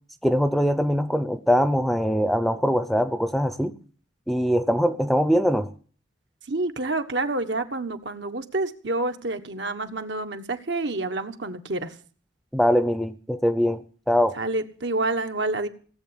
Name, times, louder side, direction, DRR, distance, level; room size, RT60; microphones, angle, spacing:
voice 1, 0.2-3.7 4.3-5.7 12.5-14.4, equal, ahead, 12 dB, 0.7 m, -22 dB
voice 2, 6.5-11.9 14.4-15.7, right 2 dB, 65° right, 7 dB, 1.5 m, -28 dB
17.5 x 8.1 x 9.8 m, 0.41 s
head